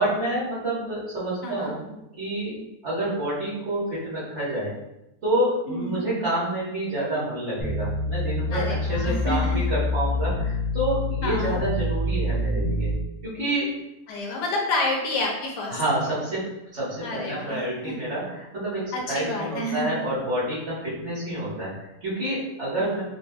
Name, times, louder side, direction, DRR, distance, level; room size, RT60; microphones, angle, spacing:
voice 1, 0.0-1.9 2.2-2.5 2.8-4.8 5.2-12.9 13.2-13.8 15.7-16.5 16.7-23.0, right 1 dB, 45° right, -9 dB, 1.7 m, -28 dB
voice 2, 5.7-6.0 8.5-9.7 11.2-11.6 14.1-15.8 17.0-17.9 18.9-20.0 22.8-23.0, left 2 dB, 80° left, -1 dB, 1.3 m, -29 dB
sound 1, 7.6-12.9, left 2 dB, 35° left, 0.6 m, -26 dB
4.2 x 2.6 x 2.3 m, 0.88 s
omnidirectional pair, 1.8 m